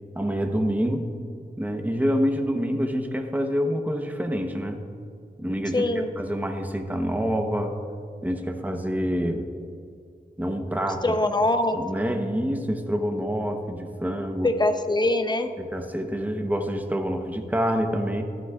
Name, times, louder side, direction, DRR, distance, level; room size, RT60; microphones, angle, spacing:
voice 1, 0.1-1.1 1.6-4.8 5.4-5.9 6.2-7.8 8.2-9.4 10.4-11.2 11.7-14.5 15.6-18.2, equal, 10° right, 4 dB, 0.8 m, -27 dB
voice 2, 5.7-6.1 11.0-11.8 14.4-15.5, left 2 dB, 25° left, 8 dB, 0.6 m, -23 dB
14.0 x 11.5 x 2.4 m, 2.4 s
wide cardioid pair, 95°, 16 cm